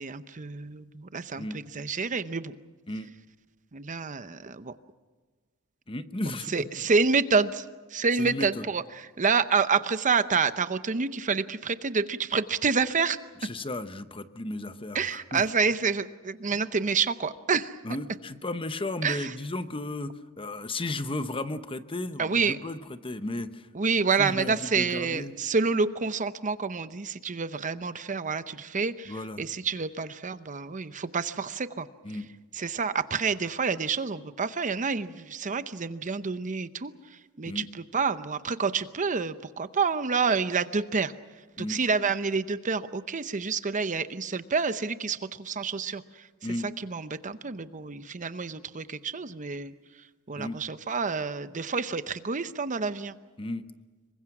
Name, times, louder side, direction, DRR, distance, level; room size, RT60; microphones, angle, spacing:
voice 1, 0.0-2.5 3.7-4.7 6.5-7.6 7.9-13.2 14.9-17.7 19.0-19.3 22.2-22.6 23.7-31.9 32.5-36.9 37.4-37.7 37.9-41.1 41.6-46.0 46.8-49.7 50.3-53.2, right 5 dB, 35° right, 12 dB, 0.7 m, -28 dB
voice 2, 5.9-6.7 8.2-8.6 13.4-15.4 16.5-16.6 17.8-23.7 24.2-25.3 29.1-29.4 32.0-32.3 37.4-37.7 41.6-41.8 46.4-46.7 50.4-50.6 53.4-53.6, left 2 dB, 25° left, 11 dB, 1.0 m, -34 dB
26.5 x 23.5 x 6.1 m, 1.4 s
head